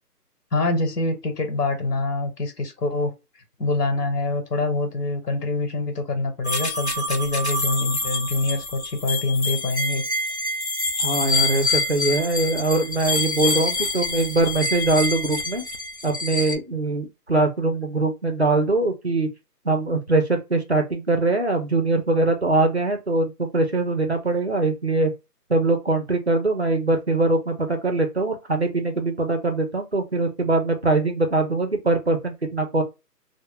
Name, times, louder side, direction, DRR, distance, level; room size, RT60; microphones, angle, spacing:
voice 1, 0.5-3.1 3.6-10.0, left 2 dB, 70° left, 1.1 m, -25 dB
sound 1, 6.4-16.6, left 2 dB, 45° left, 0.4 m, -27 dB
voice 2, 11.0-15.6 16.0-19.3 19.6-25.1 25.5-32.8, right 2 dB, 45° right, 0.5 m, -22 dB
2.3 x 2.0 x 3.2 m
figure-of-eight pair, 170°, 49 cm